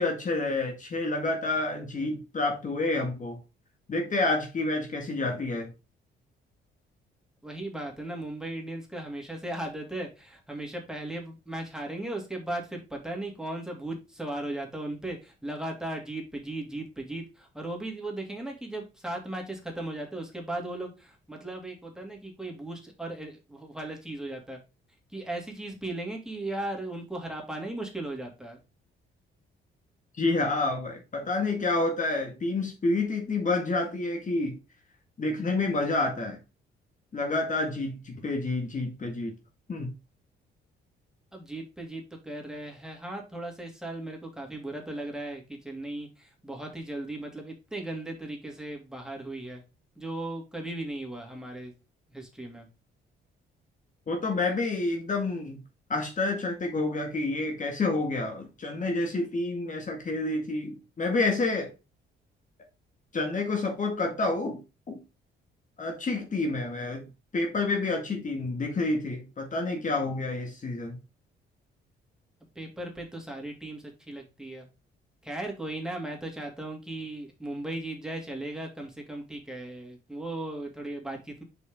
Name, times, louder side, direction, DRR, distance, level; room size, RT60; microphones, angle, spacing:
voice 1, 0.0-3.4 3.9-5.7 30.2-34.6 35.2-36.4 37.1-39.3 39.7-39.9 54.1-55.6 55.9-61.7 63.1-64.6 64.9-65.0 65.8-71.0, left 2 dB, 40° left, 1.9 m, -29 dB
voice 2, 7.4-24.6 25.1-28.6 41.3-49.6 50.0-51.7 52.1-52.7 72.5-74.7 75.2-81.4, right 1 dB, 5° right, 2.8 m, -37 dB
6.4 x 5.3 x 3.7 m
cardioid pair, 90°, 20 cm